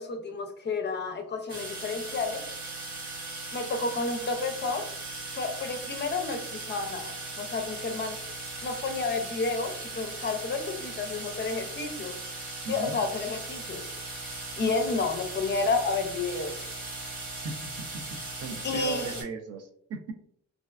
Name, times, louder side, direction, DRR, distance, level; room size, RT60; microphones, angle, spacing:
voice 1, 0.0-2.5 3.5-4.9 5.3-8.2 8.6-12.2 12.7-13.9 14.6-16.8 18.6-19.2, left 3 dB, 35° left, 6 dB, 0.4 m, -31 dB
sound 1, 1.5-19.2, right 2 dB, 90° right, 1.1 m, -38 dB
voice 2, 12.6-13.0 17.4-17.7 17.9-20.1, right 4 dB, 55° right, 6 dB, 0.4 m, -38 dB
2.4 x 2.2 x 2.2 m, 0.66 s
cardioid pair, 90°, 30 cm